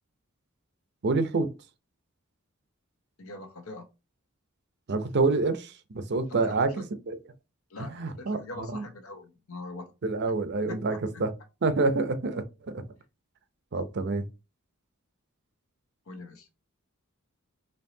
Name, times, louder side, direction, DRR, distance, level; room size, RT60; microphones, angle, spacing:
voice 1, 1.0-1.5 4.9-6.9 7.8-8.8 10.0-11.3 11.6-12.8 13.7-14.3, right 3 dB, 50° right, 0.6 m, -27 dB
voice 2, 3.2-3.9 6.3-6.8 7.7-9.9 10.7-11.0 16.1-16.5, left 2 dB, 75° left, 1.0 m, -42 dB
4.5 x 3.0 x 2.7 m
head